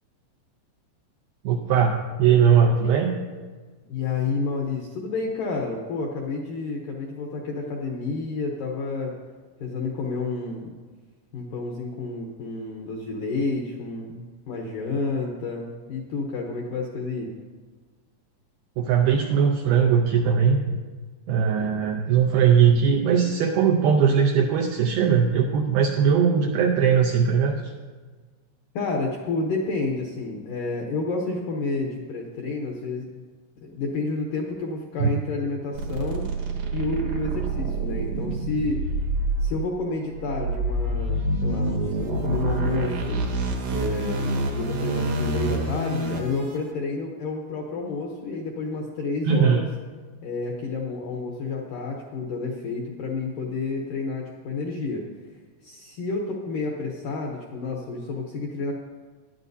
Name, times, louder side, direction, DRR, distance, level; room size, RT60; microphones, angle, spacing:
voice 1, 1.4-3.2 18.8-20.8 21.3-27.6 35.0-35.1 49.3-49.6, right 7 dB, 85° right, 1 dB, 2.2 m, -20 dB
voice 2, 3.9-9.1 9.6-10.7 11.3-17.3 28.7-33.1 33.6-36.3 36.7-38.9 39.4-43.2 43.7-49.7 50.2-55.1 55.6-58.7, left 3 dB, 75° left, 0 dB, 1.9 m, -30 dB
sound 1, 35.7-46.6, right 2 dB, 65° right, 1.9 m, -27 dB
18.5 x 11.5 x 2.7 m, 1.4 s
omnidirectional pair, 5.2 m